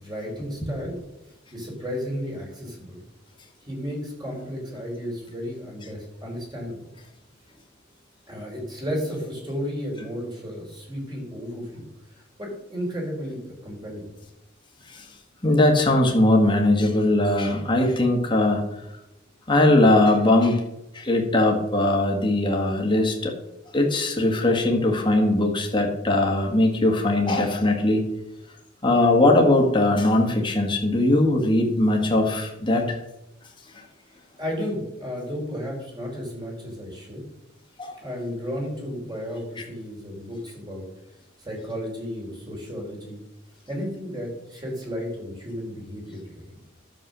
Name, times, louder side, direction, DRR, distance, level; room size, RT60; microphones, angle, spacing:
voice 1, 0.0-1.0 1.5-3.0 3.6-6.8 8.3-11.9 12.4-14.1 34.4-37.2 38.0-40.8 41.4-43.2 43.7-46.5, equal, 20° right, -2 dB, 3.7 m, -33 dB
voice 2, 15.4-18.6 19.5-20.6 20.9-23.3 23.7-28.1 28.8-33.0 33.7-33.8 37.8-38.0 39.6-39.7, left 2 dB, 25° left, 1 dB, 1.9 m, -20 dB
11.0 x 7.3 x 6.3 m, 0.89 s
head